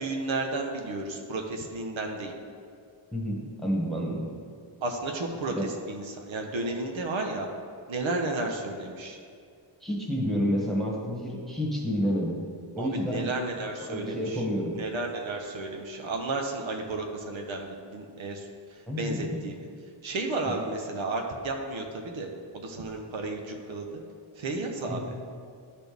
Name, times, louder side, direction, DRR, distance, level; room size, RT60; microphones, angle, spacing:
voice 1, 0.0-2.3 4.8-7.5 7.9-9.2 12.8-14.4 14.8-19.6 20.0-22.3 22.5-23.9 24.4-25.0, right 2 dB, 75° right, 2 dB, 0.9 m, -33 dB
voice 2, 3.1-4.3 5.4-5.7 9.8-12.4 12.8-13.3 13.8-14.7 18.9-19.3 24.9-25.0, equal, ahead, -4 dB, 1.4 m, -29 dB
12.0 x 4.2 x 3.5 m, 2.3 s
wide cardioid pair, 120°, 46 cm